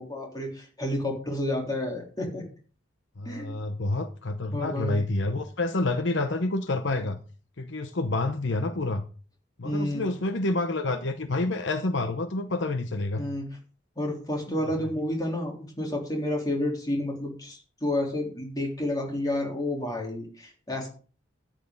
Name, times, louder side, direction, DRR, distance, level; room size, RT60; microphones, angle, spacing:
voice 1, 0.0-2.4 3.3-3.6 4.5-5.0 6.9-7.0 9.6-10.1 13.2-13.6 14.0-20.9, left 1 dB, 20° left, -1 dB, 3.6 m, -30 dB
voice 2, 3.2-7.2 7.6-9.0 9.6-13.2 14.6-14.9, left 2 dB, 65° left, 9 dB, 0.8 m, -28 dB
13.5 x 9.2 x 4.0 m, 0.40 s
head